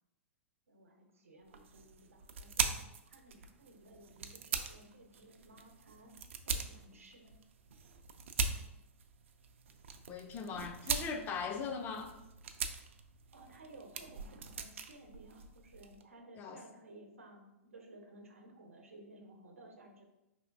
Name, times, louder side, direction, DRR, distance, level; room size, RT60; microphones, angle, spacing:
voice 1, 0.7-2.8 3.1-6.1 6.4-7.3 13.3-20.1, right 2 dB, 75° right, 3 dB, 0.8 m, -56 dB
sound 1, 1.5-16.0, right 5 dB, 60° right, 0.4 m, -41 dB
voice 2, 10.1-12.2 16.4-16.6, left 5 dB, 25° left, 5 dB, 0.4 m, -39 dB
4.9 x 3.4 x 2.6 m, 0.92 s
figure-of-eight pair, 110°, 7 cm